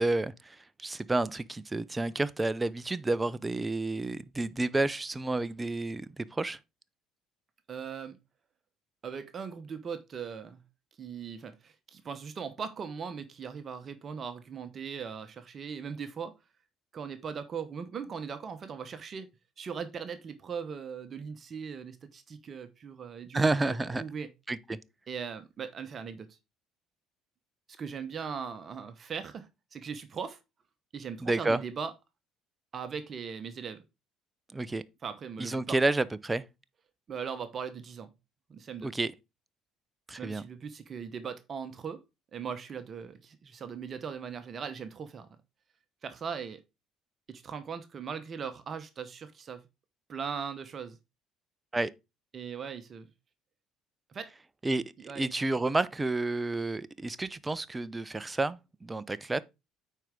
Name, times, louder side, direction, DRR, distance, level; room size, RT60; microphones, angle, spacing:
voice 1, 0.0-6.6 23.3-24.0 24.5-24.8 31.2-31.6 34.5-34.8 35.4-36.4 38.8-39.1 40.1-40.4 51.7-51.9 54.6-54.8 55.2-59.4, right 2 dB, 20° right, 0.6 m, -30 dB
voice 2, 7.7-8.2 9.0-10.6 11.0-16.3 16.9-19.3 19.6-24.3 25.1-26.4 27.8-30.4 30.9-31.9 32.7-33.8 35.0-35.8 37.1-38.1 38.5-38.9 40.2-42.0 42.3-45.4 46.0-46.6 47.3-49.7 50.1-51.0 52.3-53.1 54.1-54.3 55.0-55.3, right 6 dB, 45° right, 1.0 m, -39 dB
9.1 x 4.6 x 3.6 m
hypercardioid pair, 55°, 0 cm